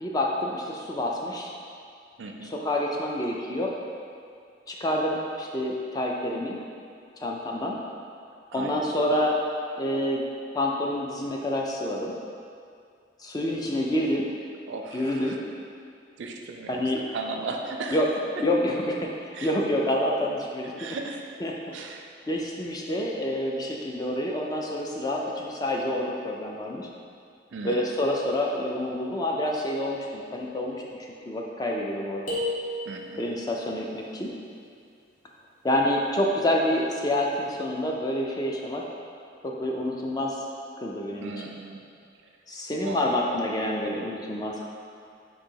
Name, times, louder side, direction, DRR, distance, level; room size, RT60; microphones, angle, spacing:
voice 1, 0.0-1.5 2.4-3.7 4.7-6.6 7.2-7.8 8.5-9.4 9.8-10.2 10.5-12.1 13.2-14.3 14.9-15.4 16.7-17.0 17.9-18.1 18.4-21.0 21.4-21.6 22.2-26.9 27.6-30.8 31.3-32.4 33.2-34.3 35.6-38.8 39.4-40.4 40.8-41.3 42.5-44.6, left 1 dB, 20° left, -1 dB, 0.4 m, -28 dB
voice 2, 2.2-2.5 8.5-8.9 14.7-15.4 16.2-16.8 17.1-18.0 19.3-19.5 20.8-21.2 21.7-22.1 27.5-27.9 32.9-33.2 41.2-41.8 42.8-43.0, right 3 dB, 90° right, 3 dB, 0.4 m, -36 dB
sound 1, 32.3-33.4, left 1 dB, 45° left, 1.0 m, -31 dB
3.9 x 2.7 x 4.5 m, 2.4 s
head